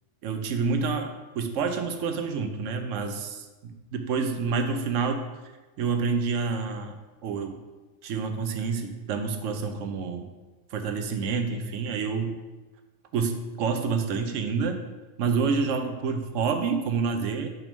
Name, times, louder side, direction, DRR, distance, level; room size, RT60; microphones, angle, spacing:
voice 1, 0.2-5.2 5.8-7.6 8.0-10.3 10.7-12.4 13.1-14.8 15.2-17.5, right 5 dB, 90° right, 6 dB, 1.0 m, -28 dB
5.8 x 3.5 x 5.2 m, 1.2 s
omnidirectional pair, 1.2 m